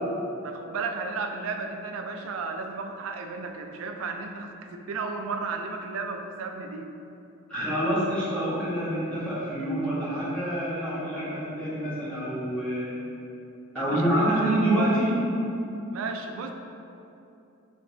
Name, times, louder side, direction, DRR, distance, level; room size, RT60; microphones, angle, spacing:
voice 1, 0.4-6.9 13.8-14.4 14.7-14.9 15.9-16.5, right 4 dB, 70° right, 5 dB, 0.3 m, -34 dB
voice 2, 7.5-13.0 13.7-15.1, right 1 dB, 5° left, -11 dB, 1.1 m, -27 dB
3.7 x 3.6 x 2.6 m, 2.8 s
head